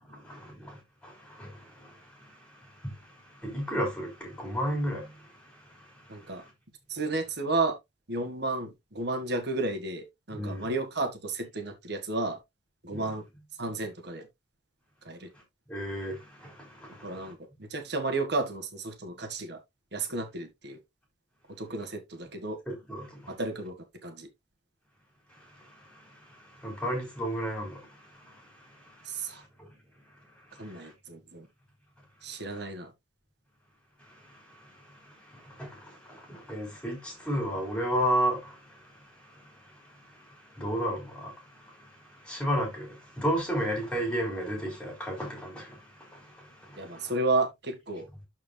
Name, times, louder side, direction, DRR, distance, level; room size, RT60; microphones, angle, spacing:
voice 1, 0.1-6.5 10.3-10.7 12.9-13.1 15.7-17.3 22.7-23.3 25.3-29.8 30.5-30.9 34.0-47.1, equal, 5° left, 3.7 m, -35 dB
voice 2, 6.1-6.4 6.9-7.8 8.1-12.4 12.8-13.3 13.6-14.3 15.1-15.3 16.9-19.6 19.9-20.8 21.5-22.6 23.3-23.8 24.0-24.3 29.1-29.4 30.6-31.5 32.2-32.9 46.8-48.1, right 2 dB, 60° right, 1.8 m, -32 dB
12.5 x 4.5 x 2.3 m
head